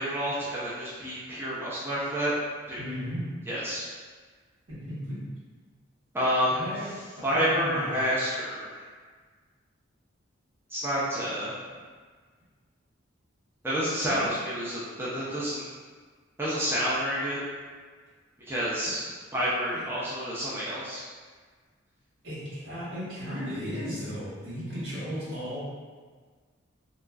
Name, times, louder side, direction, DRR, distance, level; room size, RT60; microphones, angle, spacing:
voice 1, 0.0-2.3 2.7-2.8 3.5-3.9 6.1-6.7 7.2-8.8 10.7-11.5 13.6-15.7 16.4-17.4 18.5-19.0 19.3-21.0, equal, 10° right, -8 dB, 0.4 m, -29 dB
voice 2, 2.8-3.3 4.7-5.3 6.5-6.9 7.2-7.9 14.0-14.3 18.8-19.0 19.7-19.8 22.2-25.6, equal, 80° right, -12 dB, 1.5 m, -35 dB
2.9 x 2.5 x 2.3 m, 1.5 s
head